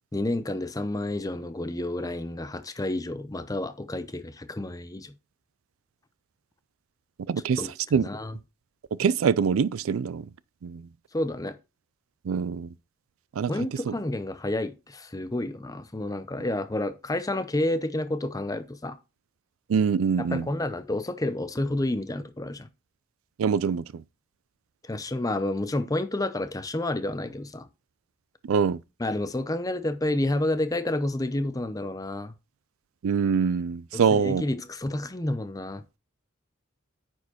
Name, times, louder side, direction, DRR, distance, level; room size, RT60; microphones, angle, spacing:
voice 1, 0.1-5.1 7.6-8.4 11.1-11.6 13.5-19.0 20.2-22.7 24.9-27.7 29.0-32.3 33.9-35.8, left 1 dB, 15° left, 0.6 m, -30 dB
voice 2, 7.3-7.6 7.9-8.1 9.0-10.3 10.6-10.8 12.3-12.7 13.4-13.5 13.9-14.0 19.7-20.5 23.4-24.0 28.5-28.8 33.0-34.4, right 6 dB, 80° right, 0.4 m, -24 dB
9.4 x 4.6 x 4.2 m
head